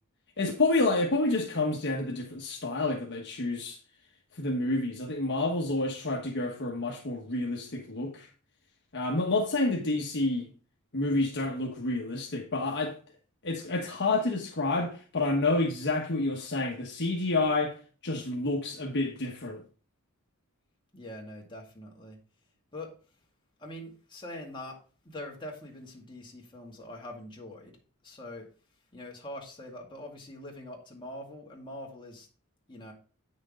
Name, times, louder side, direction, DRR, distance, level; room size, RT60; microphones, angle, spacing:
voice 1, 0.4-3.8 4.3-8.3 8.9-10.5 10.9-13.0 13.4-17.8 18.0-19.6, left 2 dB, 50° left, 1.2 m, -29 dB
voice 2, 20.9-22.2 22.7-22.9 23.6-24.8 25.0-27.8 28.0-28.5 28.9-32.3 32.7-32.9, left 1 dB, 20° left, 2.2 m, -43 dB
9.0 x 6.3 x 3.7 m
head